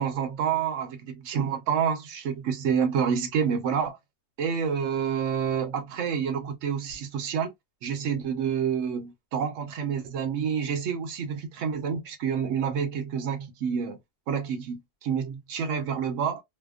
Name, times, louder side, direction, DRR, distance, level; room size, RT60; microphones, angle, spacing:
voice 1, 0.0-4.0 4.4-7.5 7.8-14.0 14.3-16.4, right 7 dB, 60° right, 0.9 m, -28 dB
2.8 x 2.1 x 2.3 m
omnidirectional pair, 1.7 m